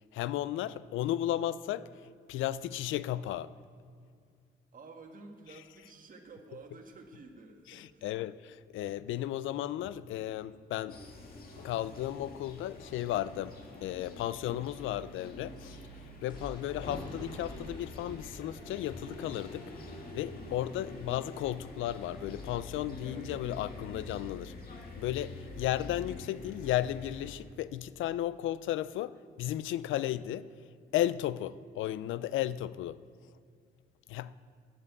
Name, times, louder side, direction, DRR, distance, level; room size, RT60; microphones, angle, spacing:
voice 1, 0.1-1.9 2.3-3.5 7.7-11.0 11.6-13.5 13.8-15.8 16.2-19.7 20.1-24.5 25.0-30.5 30.9-33.0 34.1-34.3, left 13 dB, 80° left, 0.4 m, -34 dB
voice 2, 4.7-8.2 34.0-34.3, right 3 dB, 45° right, 1.6 m, -52 dB
sound 1, 8.8-9.0 9.8-10.0 10.9-11.5 12.1-12.3 12.9-13.1 13.4-13.6 14.2-14.4 16.2-26.1, left 1 dB, 20° left, 2.1 m, -52 dB
sound 2, 10.9-27.3, left 2 dB, 50° left, 2.1 m, -46 dB
9.8 x 7.6 x 8.2 m
cardioid pair, 90°, 20 cm